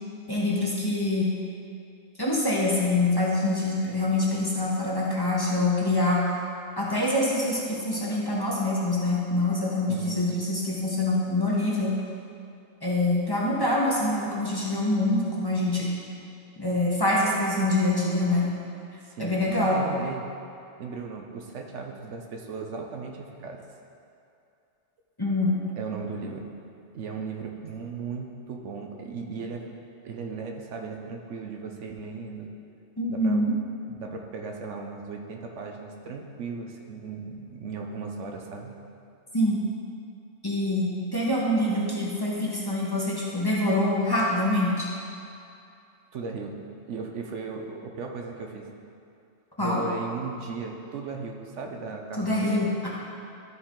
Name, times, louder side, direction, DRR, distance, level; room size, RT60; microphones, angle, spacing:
voice 1, 0.3-1.3 2.2-6.2 6.8-11.9 12.8-15.9 16.6-18.5 19.2-19.8 25.2-25.6 33.0-33.5 39.3-39.6 40.4-44.9 49.6-49.8 52.2-52.9, left 1 dB, 20° left, -6 dB, 1.3 m, -25 dB
voice 2, 9.9-10.4 19.0-20.3 20.8-23.6 25.8-26.5 26.9-29.6 30.0-32.5 33.1-33.5 33.9-38.7 46.1-46.5 46.9-48.7 49.6-52.6, right 4 dB, 80° right, 2 dB, 1.1 m, -36 dB
13.0 x 4.5 x 3.8 m, 2.6 s
omnidirectional pair, 1.2 m